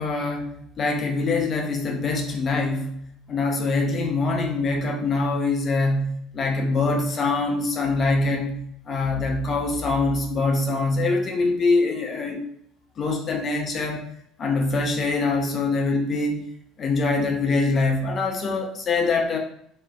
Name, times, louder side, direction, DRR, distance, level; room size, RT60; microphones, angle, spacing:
voice 1, 0.0-3.0 3.3-8.6 8.9-12.4 13.0-14.0 14.4-16.5 16.8-19.4, left 3 dB, 40° left, 1 dB, 0.5 m, -24 dB
2.5 x 2.3 x 2.3 m, 0.70 s
figure-of-eight pair, 60°, 0 cm